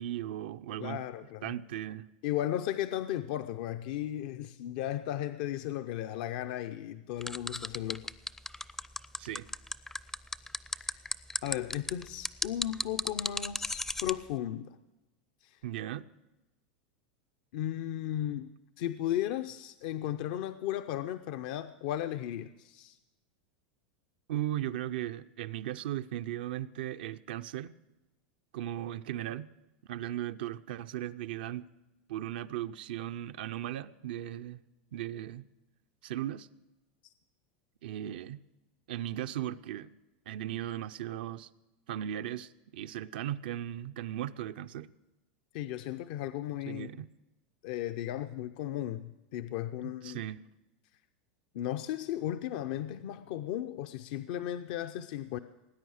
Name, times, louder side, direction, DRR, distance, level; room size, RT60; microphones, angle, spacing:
voice 1, 0.0-1.0 1.4-2.1 9.2-9.5 15.6-16.1 24.3-27.7 28.5-29.5 29.9-31.6 32.1-34.6 34.9-35.4 36.0-36.5 37.8-38.4 38.9-39.9 40.3-41.5 41.9-44.9 46.7-47.1 49.8-50.4, right 12 dB, 80° right, 0.5 m, -37 dB
voice 2, 0.8-1.5 2.2-8.1 10.8-11.0 11.4-14.8 15.4-15.6 17.5-18.5 18.8-23.0 45.5-46.9 47.6-50.2 51.5-55.4, left 12 dB, 65° left, 0.6 m, -35 dB
sound 1, 7.2-14.1, left 2 dB, 10° left, 0.4 m, -34 dB
19.0 x 9.4 x 6.4 m
supercardioid pair, 120°, 5 cm